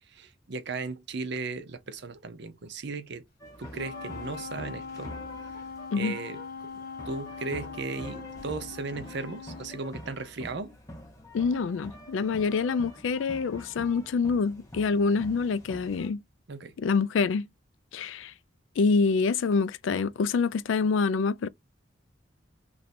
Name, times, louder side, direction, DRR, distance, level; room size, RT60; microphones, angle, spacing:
voice 1, 0.1-3.2 3.6-5.1 5.9-10.8 16.5-16.7, right 3 dB, 60° right, 0.7 m, -36 dB
sound 1, 3.4-16.1, equal, 15° left, 1.0 m, -46 dB
Wind instrument woodwind instrument, 3.7-9.8, left 5 dB, 50° left, 0.8 m, -41 dB
voice 2, 11.3-16.2 16.8-17.5 17.9-18.3 18.8-21.5, left 4 dB, 75° left, 0.4 m, -26 dB
3.1 x 2.6 x 4.2 m
head